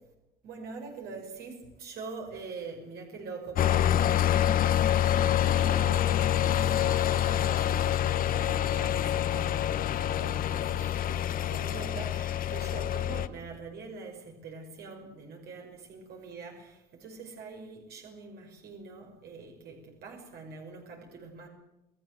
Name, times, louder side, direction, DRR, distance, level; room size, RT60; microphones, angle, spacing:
voice 1, 0.4-21.5, right 4 dB, 70° right, 2 dB, 5.7 m, -44 dB
sound 1, 3.6-13.3, left 11 dB, 55° left, 1.3 m, -26 dB
28.5 x 17.5 x 7.8 m, 0.96 s
cardioid pair, 110°, 17 cm